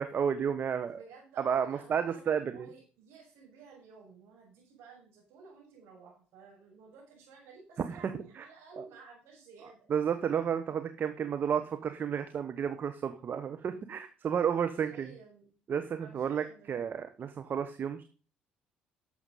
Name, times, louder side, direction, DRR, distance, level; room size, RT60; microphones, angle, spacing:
voice 1, 0.0-1.0 1.4-2.7 7.9-8.4 8.8-8.9 9.9-15.1 15.7-18.0, right 7 dB, 50° right, 9 dB, 1.1 m, -32 dB
voice 2, 0.8-9.9 14.6-15.5 16.0-16.9, right 4 dB, 75° right, -5 dB, 5.4 m, -54 dB
11.5 x 7.1 x 5.4 m, 0.37 s
hypercardioid pair, 55°, 4 cm